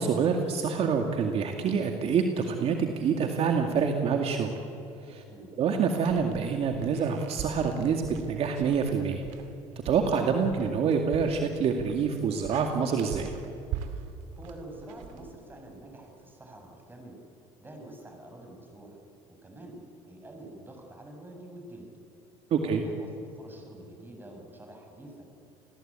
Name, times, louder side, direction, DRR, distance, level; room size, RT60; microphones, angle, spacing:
voice 1, 0.0-4.5 5.1-5.2 5.6-9.2 9.8-13.3 22.5-22.8, right 6 dB, 50° right, 4 dB, 2.2 m, -26 dB
sound 1, 6.0-15.8, right 9 dB, 75° right, 2.4 m, -42 dB
voice 2, 14.4-17.1 17.6-19.0 19.4-19.8 20.1-21.9 22.6-23.1 23.3-25.3, right 1 dB, 15° right, 3 dB, 7.4 m, -47 dB
28.5 x 21.0 x 8.9 m, 2.7 s
supercardioid pair, 95°, 12 cm